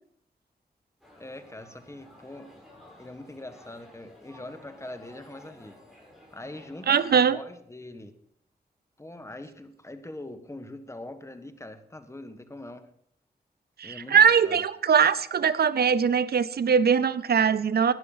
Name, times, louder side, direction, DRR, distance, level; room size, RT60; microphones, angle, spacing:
sound 1, 1.0-7.1, left 1 dB, ahead, 6.6 m, -53 dB
voice 1, 1.2-2.5 3.0-5.8 6.3-8.1 9.0-12.9 13.8-14.6, left 1 dB, 15° left, 1.5 m, -42 dB
voice 2, 6.9-7.4 13.8-17.9, right 7 dB, 70° right, 0.6 m, -21 dB
12.0 x 10.5 x 5.6 m
cardioid pair, 75°, 17 cm